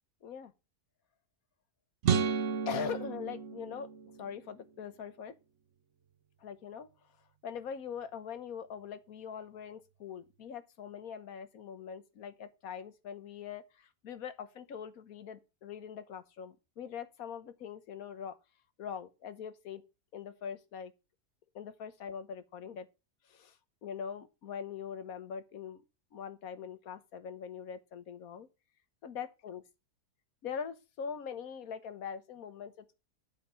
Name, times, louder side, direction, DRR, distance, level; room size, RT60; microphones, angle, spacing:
voice 1, 0.2-0.5 2.7-3.9 4.2-5.3 6.4-6.9 7.4-18.4 18.8-19.8 20.1-20.9 21.5-22.9 23.3-23.6 23.8-25.8 26.1-28.5 29.0-29.6 30.4-33.0, left 7 dB, 65° left, 1.4 m, -42 dB
sound 1, 2.0-4.4, right 6 dB, 55° right, 0.9 m, -32 dB
8.8 x 4.9 x 6.9 m
omnidirectional pair, 1.7 m